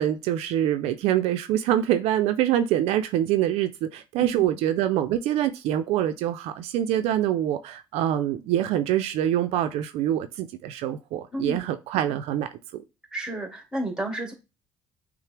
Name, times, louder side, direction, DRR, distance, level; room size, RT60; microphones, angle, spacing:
voice 1, 0.0-12.8, right 11 dB, 75° right, 0.4 m, -25 dB
voice 2, 4.2-4.6 11.3-11.7 13.1-14.3, right 1 dB, 5° right, 1.7 m, -32 dB
5.6 x 2.0 x 3.3 m
supercardioid pair, 80°, 11 cm